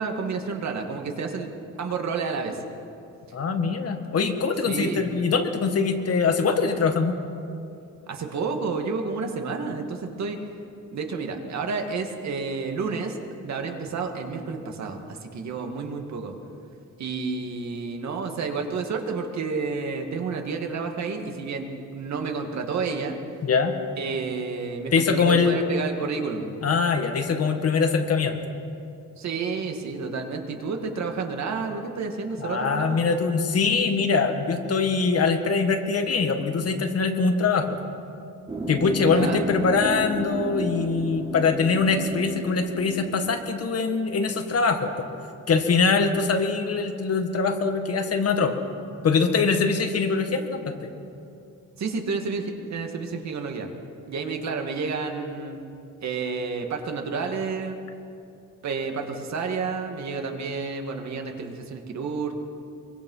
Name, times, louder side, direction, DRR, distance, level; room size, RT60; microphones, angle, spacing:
voice 1, 0.0-1.5 1.8-2.6 4.6-5.1 8.1-10.4 10.9-16.3 17.0-21.7 21.9-23.2 24.0-26.5 29.2-33.0 39.1-39.4 51.8-53.7 54.1-55.6 56.0-57.8 58.6-62.3, right 4 dB, 60° right, 3 dB, 2.2 m, -30 dB
voice 2, 3.3-7.2 23.4-23.7 24.9-25.6 26.6-28.4 32.4-37.8 38.7-45.1 45.5-48.6 49.0-50.9, left 4 dB, 50° left, 5 dB, 1.9 m, -23 dB
sound 1, 38.5-43.5, right 1 dB, 20° right, 2.1 m, -33 dB
24.5 x 23.5 x 5.7 m, 2.6 s
wide cardioid pair, 150°, 30 cm